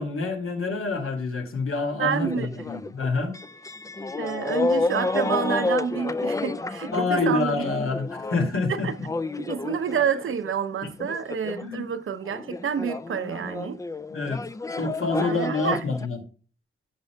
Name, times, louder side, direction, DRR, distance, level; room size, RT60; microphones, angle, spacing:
voice 1, 0.0-3.3 6.9-8.9 10.8-10.9 11.6-11.8 14.1-14.4 14.7-16.2, left 3 dB, 90° left, 2.4 m, -27 dB
voice 2, 2.0-2.6 4.2-7.7 8.7-8.9 9.4-13.8 14.8-14.9 15.2-15.8, right 7 dB, 75° right, 0.8 m, -28 dB
sound 1, 2.1-10.5 11.0-12.0 12.3-16.1, left 2 dB, 15° left, 0.3 m, -30 dB
15.5 x 5.5 x 2.3 m
wide cardioid pair, 165°, 21 cm